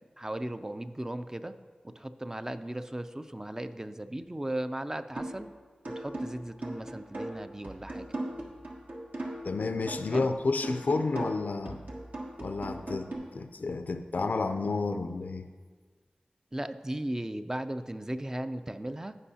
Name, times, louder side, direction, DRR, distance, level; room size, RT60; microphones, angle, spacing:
voice 1, 0.2-1.5 1.8-5.5 5.9-8.1 10.1-10.3 16.5-19.2, right 1 dB, 20° right, 9 dB, 0.4 m, -36 dB
sound 1, 5.2-5.5 5.8-9.5 9.9-13.2, right 1 dB, 70° right, 1.4 m, -39 dB
voice 2, 9.4-11.8 12.4-15.5, left 3 dB, 75° left, 9 dB, 0.5 m, -30 dB
15.5 x 5.4 x 2.8 m, 1.5 s
wide cardioid pair, 55°, 3 cm